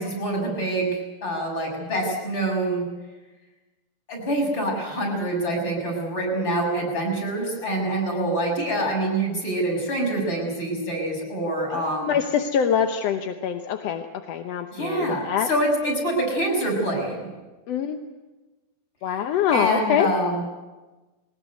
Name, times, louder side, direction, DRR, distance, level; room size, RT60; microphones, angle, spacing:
voice 1, 0.0-2.8 4.1-12.1 14.7-17.2 19.5-20.4, right 1 dB, 35° left, 0 dB, 7.1 m, -25 dB
voice 2, 11.7-15.5 17.7-18.0 19.0-20.1, left 8 dB, 65° left, 6 dB, 1.8 m, -24 dB
21.5 x 19.5 x 9.4 m, 1.2 s
omnidirectional pair, 3.6 m